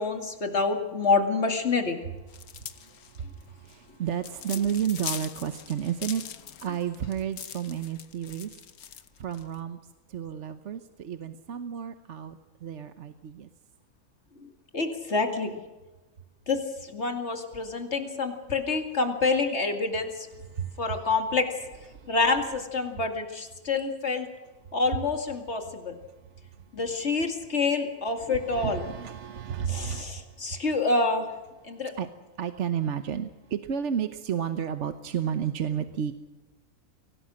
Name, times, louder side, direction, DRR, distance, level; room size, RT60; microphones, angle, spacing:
voice 1, 0.0-2.0 14.4-15.6 16.5-20.3 20.8-21.5 22.1-24.3 24.7-26.0 26.7-28.8 29.7-31.3 31.6-31.9, left 3 dB, 50° left, 5 dB, 2.6 m, -27 dB
sound 1, 2.3-9.5, left 9 dB, 80° left, 1.5 m, -41 dB
voice 2, 2.6-6.2 6.6-8.5 9.2-9.8 10.1-13.5 20.5-21.0 21.9-22.1 28.3-30.6 32.0-32.1 32.4-36.1, right 8 dB, 55° right, 9 dB, 1.1 m, -32 dB
24.0 x 18.0 x 6.3 m, 1.1 s
omnidirectional pair, 1.5 m